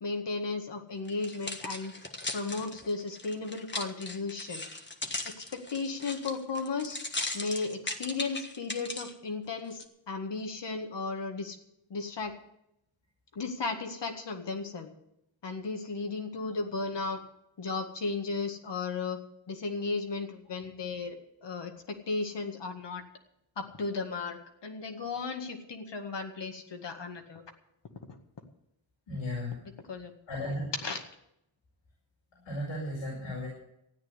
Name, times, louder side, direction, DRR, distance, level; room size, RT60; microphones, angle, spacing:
voice 1, 0.0-1.9 2.3-4.7 5.3-7.0 7.3-11.6 11.9-12.3 13.4-14.9 15.4-17.2 17.6-19.2 19.5-23.0 23.6-27.4 28.1-28.2 29.9-30.1 30.8-31.0, left 4 dB, 60° left, 5 dB, 2.0 m, -35 dB
sound 1, 1.1-9.1 9.7-9.8, left 2 dB, 25° left, 1.6 m, -38 dB
voice 2, 29.1-29.6 30.3-30.7 32.4-33.5, left 1 dB, 90° left, -5 dB, 5.4 m, -35 dB
13.5 x 9.1 x 8.1 m, 0.80 s
cardioid pair, 60°, 48 cm